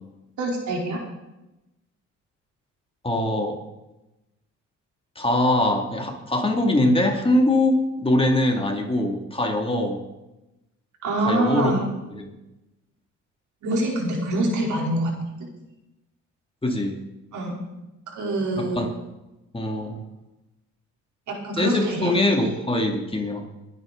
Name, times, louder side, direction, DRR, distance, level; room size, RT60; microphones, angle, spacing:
voice 1, 0.4-1.0 11.0-11.9 13.6-15.1 17.3-17.6 18.1-18.8 21.3-22.5, right 1 dB, 75° right, -1 dB, 3.9 m, -25 dB
voice 2, 3.0-3.6 5.2-10.0 11.2-11.8 12.2-12.3 16.6-17.0 18.6-18.9 19.5-20.0 21.5-23.4, left 1 dB, 20° left, 2 dB, 2.4 m, -22 dB
22.0 x 9.2 x 4.0 m, 0.98 s
cardioid pair, 90°, 30 cm